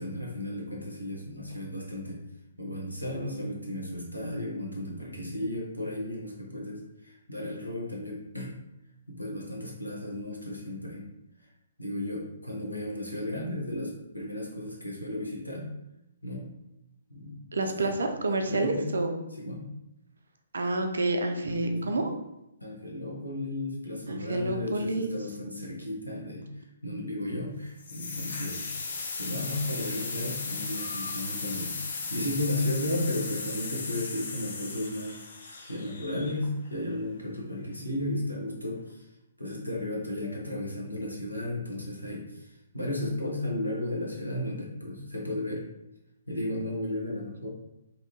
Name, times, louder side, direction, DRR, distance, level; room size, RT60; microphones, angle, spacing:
voice 1, 0.0-2.2 2.6-8.5 9.1-11.0 11.8-15.7 16.2-16.5 17.1-18.0 18.4-18.9 19.3-19.7 21.4-22.0 22.6-28.7 29.2-31.8 32.1-35.1 35.7-39.0 39.4-45.7 46.3-47.5, left 1 dB, 90° left, -3 dB, 0.7 m, -34 dB
voice 2, 17.5-19.2 20.5-22.1 24.1-25.1, right 2 dB, 65° right, 4 dB, 0.4 m, -29 dB
sound 1, 27.8-36.7, left 4 dB, 55° left, 0.4 m, -36 dB
2.7 x 2.2 x 2.7 m, 0.87 s
figure-of-eight pair, 125°, 0 cm